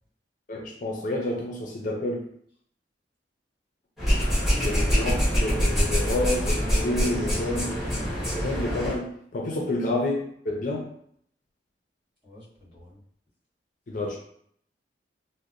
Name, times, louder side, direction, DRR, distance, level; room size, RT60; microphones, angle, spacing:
voice 1, 0.5-2.3 4.6-7.7 8.3-10.9 13.9-14.2, left 1 dB, 50° left, -1 dB, 0.5 m, -29 dB
sound 1, 4.0-9.0, equal, ahead, 0.9 m, -25 dB
voice 2, 4.4-4.7 9.5-9.6 12.2-13.0, left 1 dB, 25° right, -10 dB, 1.3 m, -49 dB
2.8 x 2.0 x 2.4 m, 0.66 s
head